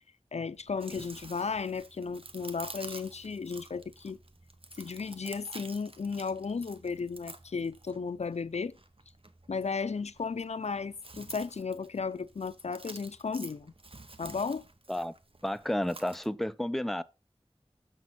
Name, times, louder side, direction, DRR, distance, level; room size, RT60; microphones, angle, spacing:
voice 1, 0.3-4.2 4.8-8.8 9.5-13.7 14.2-14.6, left 5 dB, 90° left, 0.4 m, -34 dB
Chewing mastication, 0.6-16.3, right 2 dB, 60° right, 0.9 m, -50 dB
voice 2, 15.4-17.0, left 1 dB, ahead, 0.5 m, -31 dB
6.8 x 6.1 x 4.2 m
wide cardioid pair, 40°, 11 cm